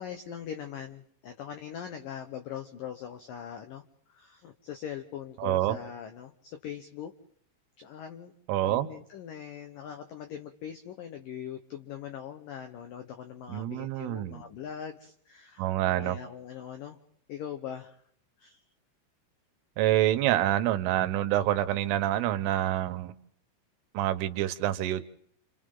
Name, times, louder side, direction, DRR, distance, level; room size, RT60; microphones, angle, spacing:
voice 1, 0.0-7.1 7.8-8.3 8.6-17.0 17.3-18.0 18.4-18.6, left 9 dB, 85° left, 7 dB, 1.9 m, -41 dB
voice 2, 5.4-5.8 8.5-8.9 13.5-14.4 15.6-16.2 19.8-23.1 24.0-25.0, right 13 dB, 85° right, 10 dB, 3.5 m, -27 dB
30.0 x 27.5 x 3.8 m, 0.65 s
omnidirectional pair, 5.6 m